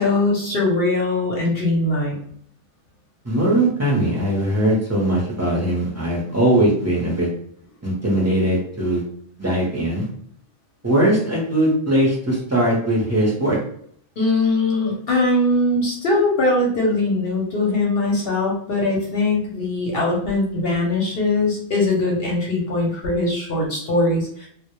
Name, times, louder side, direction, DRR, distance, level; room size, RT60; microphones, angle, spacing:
voice 1, 0.0-2.1 14.2-24.5, left 2 dB, 55° left, -2 dB, 0.7 m, -21 dB
voice 2, 3.2-7.3 7.8-9.0 9.4-10.1 10.8-13.6, right 1 dB, 20° right, -5 dB, 0.4 m, -20 dB
2.1 x 2.1 x 2.9 m, 0.63 s
omnidirectional pair, 1.3 m